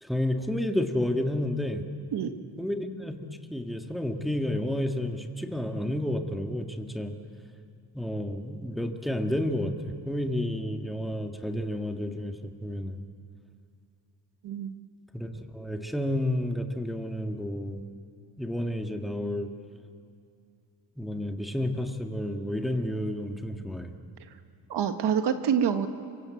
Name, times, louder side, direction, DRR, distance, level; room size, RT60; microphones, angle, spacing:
voice 1, 0.0-1.8 2.6-7.1 7.9-9.7 10.1-13.0 15.1-17.8 18.4-19.5 21.0-24.0, left 1 dB, ahead, 4 dB, 1.9 m, -31 dB
voice 2, 14.4-14.7 24.7-25.9, right 8 dB, 85° right, 8 dB, 1.7 m, -26 dB
26.0 x 23.5 x 8.5 m, 2.5 s
cardioid pair, 110°, 40 cm